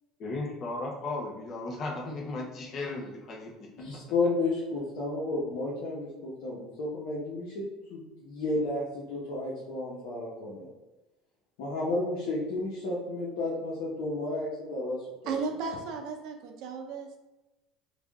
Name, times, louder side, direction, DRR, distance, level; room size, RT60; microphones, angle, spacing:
voice 1, 0.2-3.7, left 2 dB, 40° left, -1 dB, 0.7 m, -35 dB
voice 2, 3.8-10.7 11.6-15.4, left 2 dB, 80° left, -6 dB, 1.0 m, -32 dB
voice 3, 15.3-17.2, right 5 dB, 65° right, 3 dB, 0.6 m, -35 dB
3.3 x 2.4 x 3.5 m, 1.0 s
cardioid pair, 130°, 0 cm